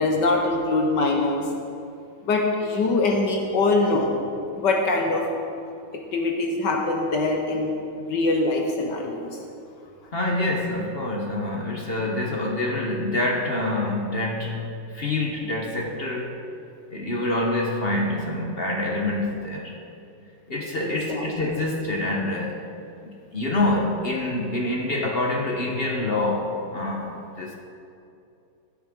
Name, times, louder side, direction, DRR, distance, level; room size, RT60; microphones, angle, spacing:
voice 1, 0.0-1.5 2.2-4.1 4.6-5.3 6.1-9.4 21.1-21.3, left 2 dB, 65° left, 1 dB, 1.6 m, -23 dB
voice 2, 10.1-14.7 14.9-16.4 16.9-19.8 20.5-22.6 23.3-27.5, left 2 dB, 40° left, -1 dB, 1.0 m, -26 dB
15.5 x 8.6 x 3.7 m, 2.6 s
omnidirectional pair, 2.1 m